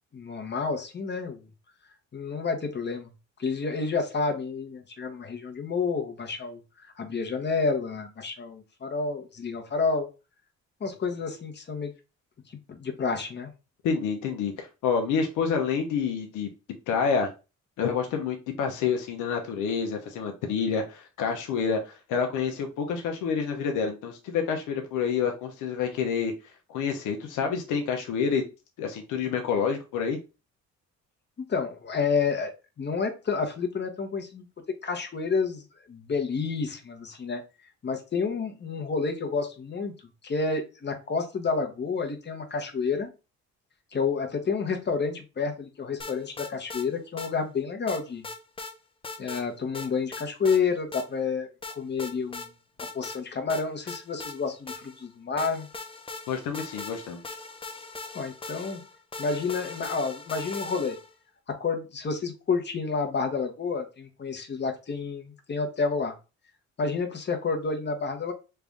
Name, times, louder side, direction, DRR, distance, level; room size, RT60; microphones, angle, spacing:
voice 1, 0.1-1.4 2.1-3.1 3.4-6.6 7.0-10.1 10.8-11.9 12.7-13.5 31.4-32.5 32.8-34.5 34.8-35.6 35.9-37.4 37.8-39.9 40.2-43.1 43.9-48.2 49.2-51.5 51.8-52.5 52.9-55.7 58.1-58.8 59.2-61.0 61.5-66.1 66.8-68.3, left 4 dB, 35° left, 5 dB, 0.9 m, -29 dB
voice 2, 13.8-16.5 16.9-17.3 17.8-26.3 26.7-28.4 28.8-30.2 56.3-57.4, left 6 dB, 90° left, 3 dB, 0.7 m, -28 dB
sound 1, 46.0-46.9 47.2-47.3 47.9-48.7 49.0-49.4 49.7-50.6 50.9-51.1 51.6-52.5 52.8-53.2 53.5-55.0 55.4-61.1, left 3 dB, 20° left, 0.5 m, -40 dB
3.3 x 2.5 x 3.4 m, 0.29 s
cardioid pair, 90°, 30 cm